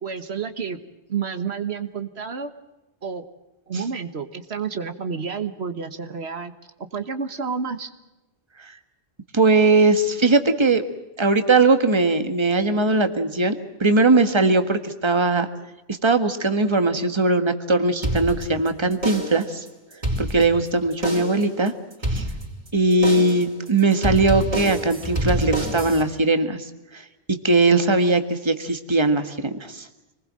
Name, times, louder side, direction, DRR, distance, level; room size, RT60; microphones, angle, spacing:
voice 1, 0.0-0.8 1.1-2.5 3.0-3.3 3.7-6.5 6.8-7.9, right 6 dB, 75° right, 9 dB, 1.6 m, -30 dB
voice 2, 9.3-10.8 11.2-15.5 15.9-19.6 20.2-21.7 22.1-22.2 22.7-26.7 26.9-29.9, right 3 dB, 25° right, 8 dB, 1.6 m, -20 dB
sound 1, 18.0-18.7 19.0-19.5 19.9-20.7 21.0-21.5 22.0-22.7 23.0-23.5 24.0-26.0, equal, 45° right, 4.8 m, -27 dB
26.0 x 20.5 x 7.5 m, 1.0 s
omnidirectional pair, 1.1 m